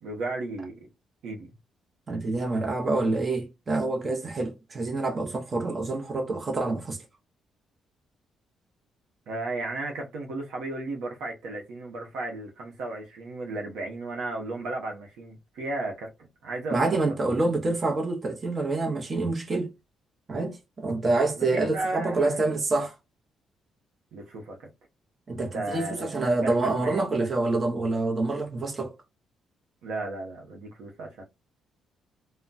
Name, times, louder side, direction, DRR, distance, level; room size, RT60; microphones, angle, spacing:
voice 1, 0.0-0.9 1.2-1.5 9.3-16.1 16.4-17.0 21.4-22.4 24.1-24.7 25.5-27.1 29.8-31.2, right 2 dB, 85° right, 0.8 m, -34 dB
voice 2, 2.1-7.0 16.7-19.7 20.3-22.9 25.3-28.9, right 2 dB, 35° right, 0.7 m, -27 dB
2.2 x 2.1 x 3.9 m
cardioid pair, 90°, 0 cm